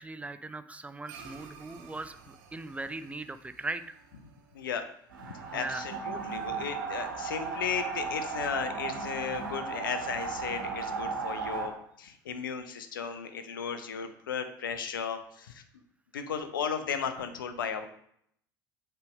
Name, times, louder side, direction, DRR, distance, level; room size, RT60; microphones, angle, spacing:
voice 1, 0.0-3.9 5.5-5.9, right 2 dB, 10° right, 12 dB, 0.4 m, -39 dB
sound 1, 1.1-5.7, right 6 dB, 60° right, 0.9 m, -53 dB
voice 2, 4.5-4.8 5.2-11.7 12.0-15.6 16.1-17.9, left 7 dB, 70° left, 9 dB, 0.7 m, -35 dB
sound 2, 5.1-11.7, right 5 dB, 75° right, 1.4 m, -35 dB
8.0 x 3.4 x 5.2 m, 0.71 s
figure-of-eight pair, 65°, 11 cm